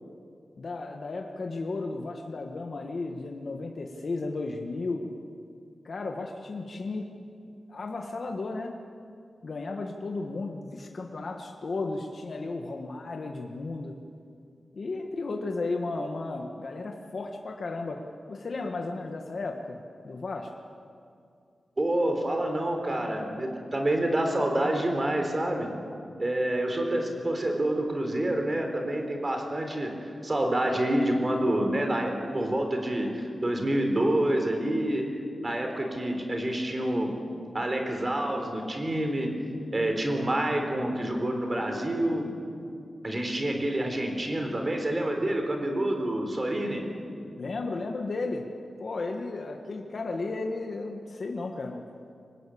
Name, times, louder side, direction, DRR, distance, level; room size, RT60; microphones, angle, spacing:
voice 1, 0.6-5.0 5.8-7.1 7.7-8.8 9.4-13.9 14.7-18.0 18.3-20.5 47.3-48.4 48.8-51.8, left 3 dB, 50° left, 2 dB, 1.6 m, -34 dB
voice 2, 21.8-25.7 26.2-35.1 35.4-37.1 37.5-39.3 39.7-42.4 43.0-46.8, right 1 dB, 25° right, 4 dB, 4.0 m, -27 dB
24.5 x 19.5 x 8.7 m, 2.4 s
wide cardioid pair, 145°, 0 cm